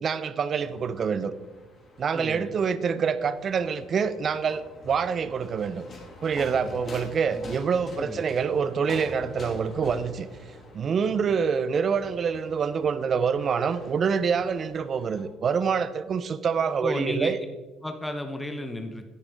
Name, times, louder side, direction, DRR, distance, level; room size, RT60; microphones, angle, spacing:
voice 1, 0.0-1.3 2.0-5.8 6.2-10.3 10.7-17.4, right 6 dB, 35° right, 14 dB, 0.4 m, -26 dB
sound 1, 0.6-15.2, left 2 dB, 30° left, 1.9 m, -46 dB
voice 2, 2.1-2.5 6.6-6.8 7.3-7.5 8.0-8.2 16.8-17.3 17.8-19.0, left 1 dB, 5° left, 6 dB, 0.7 m, -33 dB
10.0 x 9.5 x 3.4 m, 1.3 s
cardioid pair, 145°, 0 cm